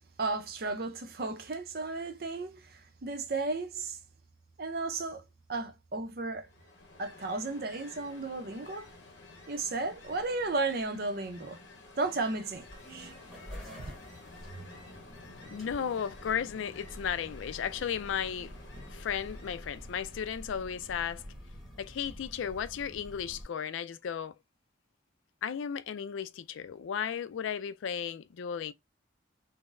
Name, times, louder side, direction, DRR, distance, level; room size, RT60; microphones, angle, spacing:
voice 1, 0.2-4.0 4.6-5.2 5.5-6.5 7.0-8.9 9.5-11.6 12.0-13.1 13.8-13.9, right 3 dB, 50° right, 0.5 m, -34 dB
Ocean, 6.4-20.5, left 2 dB, 65° left, 1.0 m, -52 dB
sound 1, 12.6-23.4, equal, ahead, 1.2 m, -48 dB
voice 2, 15.5-18.5 18.9-21.2 21.8-24.3 25.4-28.7, left 8 dB, 85° left, 0.4 m, -35 dB
3.8 x 2.0 x 2.5 m
head